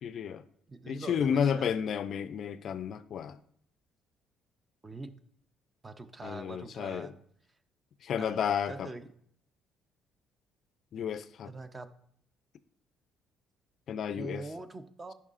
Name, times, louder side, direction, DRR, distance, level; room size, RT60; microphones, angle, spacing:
voice 1, 0.0-0.4 0.9-3.4 6.2-7.1 8.0-8.9 10.9-11.5 13.9-14.4, left 8 dB, 55° left, 14 dB, 0.3 m, -32 dB
voice 2, 0.7-1.8 4.8-5.1 5.8-7.2 8.2-8.4 8.7-9.0 11.5-11.9 14.2-15.1, right 3 dB, 20° right, 10 dB, 0.5 m, -43 dB
10.5 x 5.5 x 2.5 m, 0.66 s
cardioid pair, 105°, 0 cm